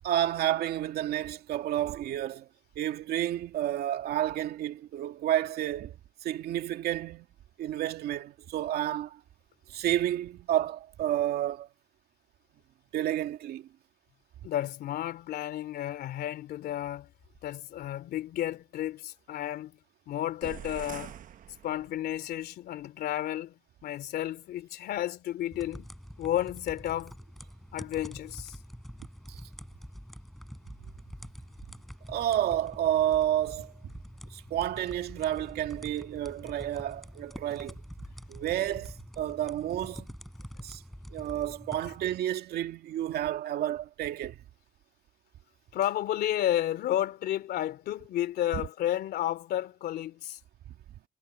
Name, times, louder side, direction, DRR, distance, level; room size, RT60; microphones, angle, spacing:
voice 1, 0.0-2.5 2.8-7.3 7.6-9.2 9.7-11.7 12.9-13.7 29.3-29.4 32.1-33.7 34.3-37.8 38.3-40.1 40.6-40.8 41.1-44.4 48.5-48.6 50.7-50.8, right 12 dB, 70° right, 2.3 m, -30 dB
voice 2, 14.4-17.1 17.4-19.8 20.1-21.1 21.6-23.5 23.8-25.9 26.2-27.2 27.7-28.6 45.7-50.4, left 12 dB, 70° left, 3.1 m, -32 dB
sound 1, 20.4-22.3, right 10 dB, 50° right, 1.1 m, -44 dB
sound 2, 25.5-42.2, equal, ahead, 7.1 m, -46 dB
cardioid pair, 110°, 17 cm